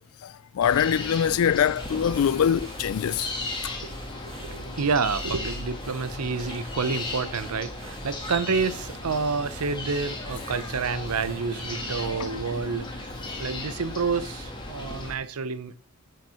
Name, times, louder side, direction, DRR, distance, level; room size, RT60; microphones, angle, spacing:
voice 1, 0.2-3.3 3.6-3.8 12.0-12.3, left 8 dB, 70° left, 0.3 m, -24 dB
sound 1, 0.6-15.1, left 2 dB, 20° left, 1.5 m, -36 dB
sound 2, 1.7-11.9, right 3 dB, 25° right, 1.0 m, -50 dB
voice 2, 3.8-15.8, right 5 dB, 85° right, 0.7 m, -29 dB
9.2 x 5.3 x 4.3 m
head